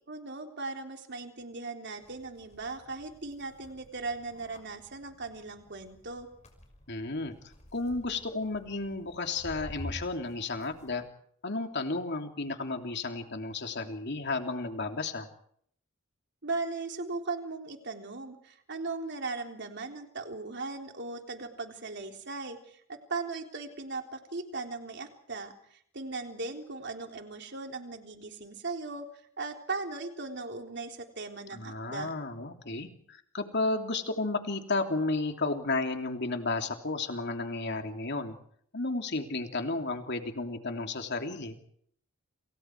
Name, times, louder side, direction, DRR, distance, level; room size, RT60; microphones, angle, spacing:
voice 1, 0.1-6.3 16.4-29.1 29.4-32.1, right 3 dB, 55° right, 4 dB, 3.7 m, -38 dB
sound 1, 2.0-11.0, equal, 35° left, 6.0 m, -49 dB
voice 2, 6.9-7.3 7.7-11.0 11.4-15.3 31.5-38.4 38.7-41.6, left 3 dB, 55° left, 5 dB, 3.1 m, -33 dB
30.0 x 28.5 x 4.7 m, 0.65 s
head